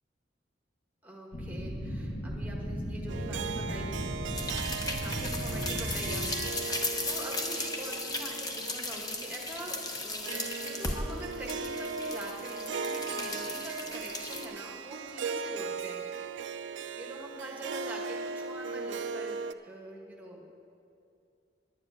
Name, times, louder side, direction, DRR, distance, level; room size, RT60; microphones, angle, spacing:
voice 1, 1.0-4.1 5.0-16.0 16.9-20.5, right 1 dB, 10° right, -1 dB, 1.4 m, -44 dB
sound 1, 1.3-6.3, equal, 65° left, 1.5 m, -36 dB
Harp, 3.1-19.5, right 5 dB, 85° right, 0.4 m, -38 dB
sound 2, 4.3-14.4, left 2 dB, 20° left, 0.8 m, -36 dB
10.5 x 7.4 x 8.9 m, 2.6 s
head